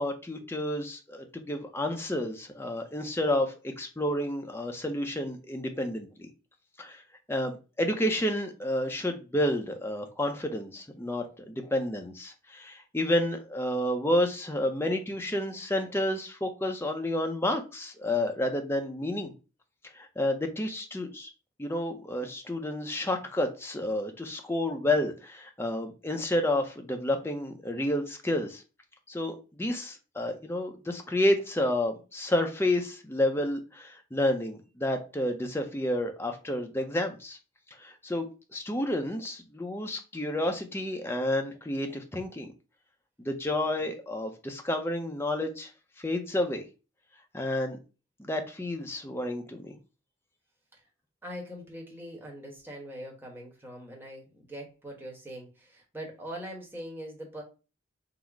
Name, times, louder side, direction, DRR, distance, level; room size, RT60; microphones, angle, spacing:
voice 1, 0.0-6.3 6.8-7.0 7.3-19.3 19.9-21.3 21.6-28.6 29.1-37.4 37.8-42.5 43.2-45.7 46.0-46.6 47.3-47.8 48.2-49.8, left 1 dB, 10° left, 4 dB, 0.5 m, -30 dB
voice 2, 51.2-57.4, equal, 10° right, -1 dB, 1.0 m, -42 dB
3.9 x 2.0 x 4.4 m, 0.32 s
head